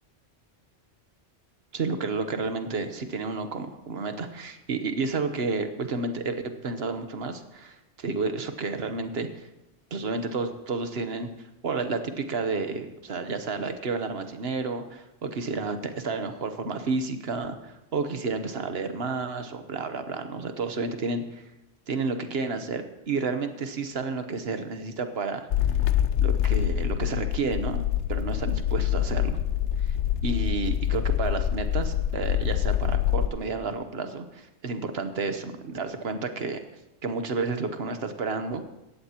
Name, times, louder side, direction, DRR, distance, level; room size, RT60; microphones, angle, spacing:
voice 1, 1.7-6.4 6.6-9.5 9.9-11.3 11.6-21.4 21.9-25.4 26.2-27.8 28.1-29.4 29.8-30.0 30.2-36.6 37.0-38.7, right 4 dB, 65° right, 8 dB, 1.2 m, -31 dB
sound 1, 25.5-33.3, left 11 dB, 90° left, 0.9 m, -25 dB
17.5 x 13.5 x 2.9 m, 0.94 s
omnidirectional pair, 1.1 m